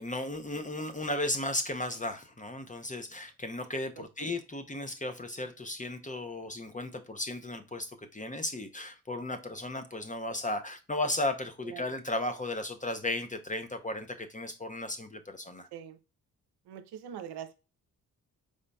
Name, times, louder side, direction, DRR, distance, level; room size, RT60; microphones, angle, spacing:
voice 1, 0.0-15.7, left 2 dB, 20° left, 7 dB, 0.7 m, -35 dB
voice 2, 16.7-17.6, right 9 dB, 90° right, 10 dB, 0.7 m, -42 dB
5.0 x 3.9 x 2.2 m, 0.30 s
cardioid pair, 55°, 39 cm